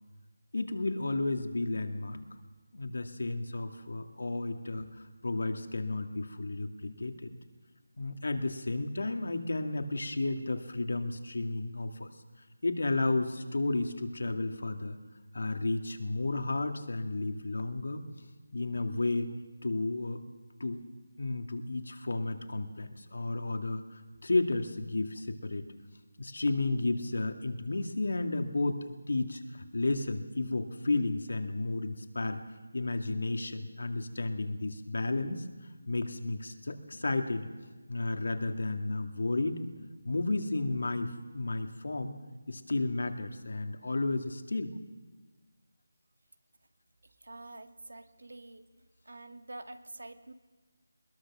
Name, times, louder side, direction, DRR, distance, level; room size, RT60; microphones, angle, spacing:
voice 1, 0.5-2.3 2.7-7.3 8.0-12.1 12.6-15.0 15.3-18.0 18.5-19.3 19.6-20.2 20.6-20.8 21.2-25.7 26.2-32.4 32.7-35.5 35.9-37.5 37.9-42.1 42.5-44.7, left 2 dB, 70° left, 5 dB, 2.3 m, -32 dB
voice 2, 47.2-48.7 49.1-50.3, right 2 dB, 85° right, 8 dB, 1.8 m, -47 dB
21.5 x 21.0 x 6.3 m, 1.3 s
figure-of-eight pair, 175°, 0 cm